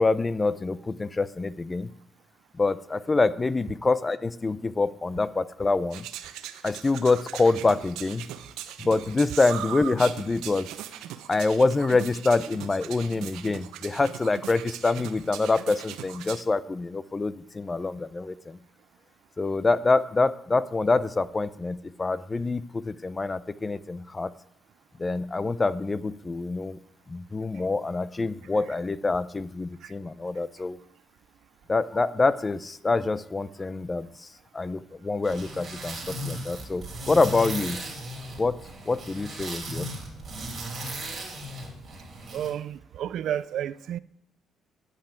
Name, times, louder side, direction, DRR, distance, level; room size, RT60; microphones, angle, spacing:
voice 1, 0.0-1.9 2.6-6.1 6.6-8.2 8.8-10.7 11.3-18.6 19.4-24.3 25.0-26.8 27.1-30.8 31.7-34.3 34.5-37.8 38.4-38.6 38.9-39.9, left 3 dB, 25° left, 0.6 m, -26 dB
sound 1, 5.9-16.4, right 11 dB, 90° right, 0.9 m, -39 dB
sound 2, 35.2-42.5, right 1 dB, 40° right, 5.2 m, -37 dB
voice 2, 42.3-44.0, right 10 dB, 70° right, 0.4 m, -31 dB
10.0 x 8.8 x 9.0 m
cardioid pair, 95°, 0 cm